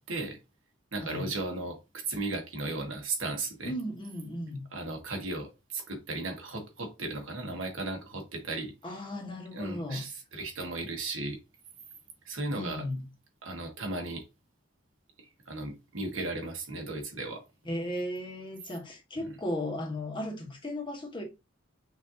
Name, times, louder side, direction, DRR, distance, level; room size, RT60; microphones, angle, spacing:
voice 1, 0.1-0.4 0.9-3.7 4.7-8.7 9.5-11.4 12.2-12.9 13.4-14.2 15.5-17.4 19.2-19.3, right 2 dB, 75° right, 1.2 m, -35 dB
voice 2, 3.6-4.6 8.8-10.0 12.5-13.1 17.6-21.2, left 1 dB, 25° left, 1.0 m, -36 dB
5.5 x 2.6 x 2.7 m
head